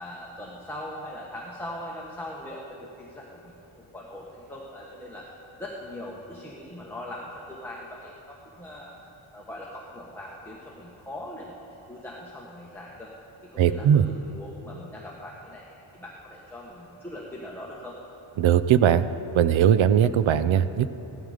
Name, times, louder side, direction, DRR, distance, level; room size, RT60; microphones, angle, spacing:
voice 1, 0.0-3.5 3.9-5.3 5.6-8.9 9.3-11.6 11.9-13.1 13.4-15.6 15.9-17.9, left 1 dB, 5° left, -4 dB, 1.1 m, -40 dB
voice 2, 13.6-14.0 18.4-19.0 19.3-20.9, right 9 dB, 70° right, 13 dB, 0.6 m, -19 dB
16.0 x 12.5 x 4.9 m, 3.0 s
wide cardioid pair, 170°, 50 cm